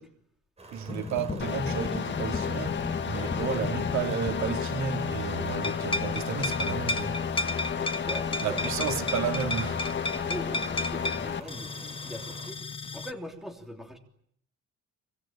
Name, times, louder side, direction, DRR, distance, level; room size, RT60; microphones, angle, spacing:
sound 1, 0.6-12.5, right 3 dB, 20° right, 6.5 m, -48 dB
voice 1, 0.7-7.2 8.4-9.8, right 7 dB, 65° right, 3.1 m, -32 dB
sound 2, 0.9-5.4 5.6-13.1, left 2 dB, 15° left, 1.1 m, -35 dB
sound 3, 1.4-11.4, left 7 dB, 35° left, 1.7 m, -32 dB
voice 2, 8.0-8.7 10.1-12.6 12.9-14.0, equal, ahead, 3.3 m, -41 dB
25.0 x 24.5 x 8.9 m
cardioid pair, 165°, 31 cm